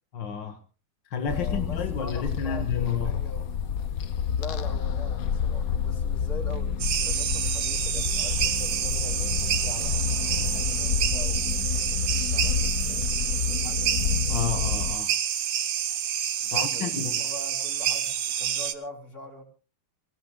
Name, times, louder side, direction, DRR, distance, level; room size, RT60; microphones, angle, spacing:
voice 1, 0.1-0.6 1.1-3.2 14.3-15.1 16.5-17.2, left 6 dB, 70° left, 2.2 m, -31 dB
sound 1, 1.3-15.0, left 7 dB, 55° left, 1.2 m, -29 dB
voice 2, 1.3-3.5 4.3-14.0 16.4-19.4, left 3 dB, 40° left, 3.7 m, -43 dB
sound 2, 6.8-18.7, right 9 dB, 80° right, 1.8 m, -28 dB
26.0 x 17.0 x 2.3 m
omnidirectional pair, 2.1 m